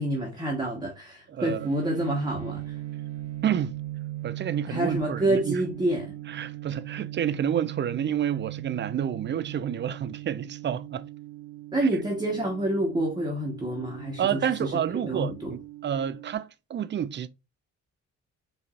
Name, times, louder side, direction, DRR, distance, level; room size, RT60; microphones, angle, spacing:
voice 1, 0.0-2.6 4.7-6.1 11.7-14.7 15.0-15.5, right 1 dB, 15° right, 1.2 m, -28 dB
voice 2, 1.3-1.7 3.4-3.8 4.2-5.6 6.3-11.0 11.8-11.9 14.2-17.3, right 9 dB, 40° right, 0.4 m, -29 dB
sound 1, 1.6-16.4, right 15 dB, 55° right, 1.1 m, -39 dB
4.6 x 2.7 x 2.4 m
cardioid pair, 90°, 30 cm